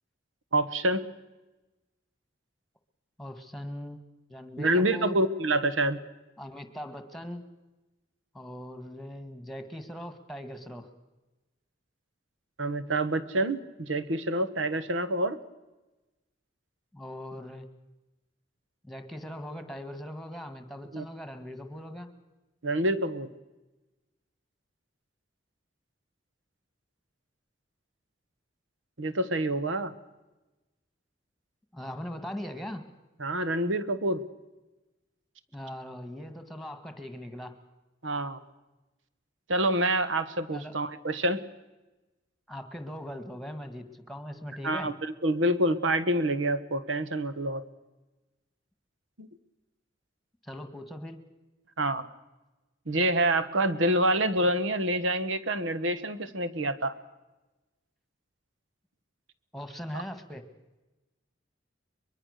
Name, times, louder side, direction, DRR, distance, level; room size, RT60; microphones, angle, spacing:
voice 1, 0.5-1.1 4.6-6.0 12.6-15.4 20.9-21.0 22.6-23.3 29.0-29.9 33.2-34.2 38.0-38.4 39.5-41.4 44.6-47.6 49.2-49.3 51.8-52.0 52.9-56.9 59.9-60.0, right 1 dB, 90° right, 12 dB, 1.4 m, -27 dB
voice 2, 3.2-5.2 6.4-7.4 8.3-10.9 16.9-17.7 18.8-22.1 31.7-32.8 35.5-37.5 40.5-40.7 42.5-44.9 50.4-51.2 59.5-60.4, left 1 dB, ahead, 8 dB, 1.8 m, -40 dB
23.5 x 22.0 x 6.7 m, 1.1 s
head